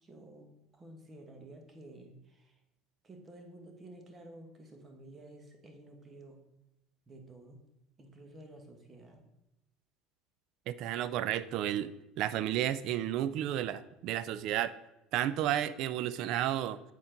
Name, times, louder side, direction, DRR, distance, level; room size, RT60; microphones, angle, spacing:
voice 1, 0.0-2.6 3.0-6.5 7.1-7.6 8.0-9.2, right 1 dB, 30° right, 4 dB, 1.3 m, -52 dB
voice 2, 10.7-11.9 12.2-14.7 15.1-16.8, right 12 dB, 60° right, 15 dB, 0.3 m, -32 dB
7.4 x 4.3 x 3.8 m, 0.92 s
supercardioid pair, 95°, 0 cm